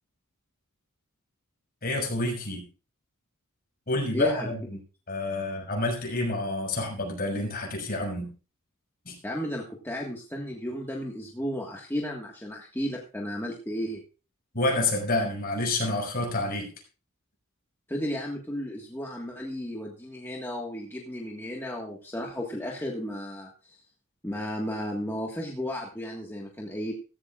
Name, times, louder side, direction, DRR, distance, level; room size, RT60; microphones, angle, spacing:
voice 1, 1.8-2.6 3.9-4.6 5.1-8.3 9.1-9.2 14.5-16.7, left 2 dB, 45° left, 1 dB, 5.8 m, -28 dB
voice 2, 4.1-4.5 9.2-14.0 17.9-23.8 24.2-26.9, equal, 10° left, -1 dB, 1.6 m, -34 dB
15.5 x 15.0 x 2.4 m, 0.33 s
head